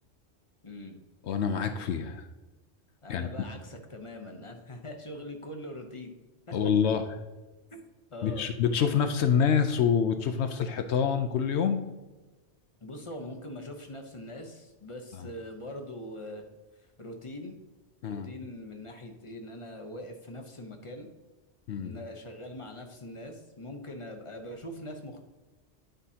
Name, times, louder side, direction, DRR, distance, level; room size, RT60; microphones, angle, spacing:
voice 1, 0.6-1.0 3.0-6.1 6.5-6.6 7.7-7.8 8.1-8.5 12.8-16.4 17.0-17.6 18.0-21.1 21.7-25.2, left 1 dB, 30° left, 4 dB, 0.8 m, -42 dB
voice 2, 1.3-2.3 3.1-3.3 6.5-7.0 8.2-11.8 15.2-15.3 18.0-18.3 21.7-21.9, left 7 dB, 75° left, 8 dB, 0.8 m, -26 dB
9.8 x 5.1 x 2.7 m, 1.2 s
omnidirectional pair, 1.2 m